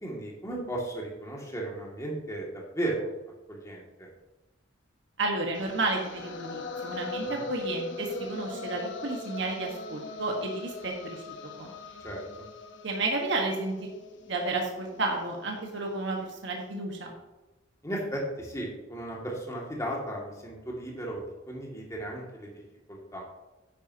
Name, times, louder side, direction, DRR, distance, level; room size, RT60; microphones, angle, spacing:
voice 1, 0.0-3.1 3.5-4.1 7.3-7.4 12.0-12.2 17.8-22.5 22.9-23.2, right 1 dB, 15° left, -2 dB, 2.3 m, -35 dB
voice 2, 5.2-11.2 11.6-11.7 12.8-13.9 14.3-17.1, right 2 dB, 60° right, 0 dB, 1.5 m, -32 dB
sound 1, 5.5-15.6, left 2 dB, 60° left, 1.1 m, -40 dB
9.7 x 9.3 x 2.9 m, 1.1 s
head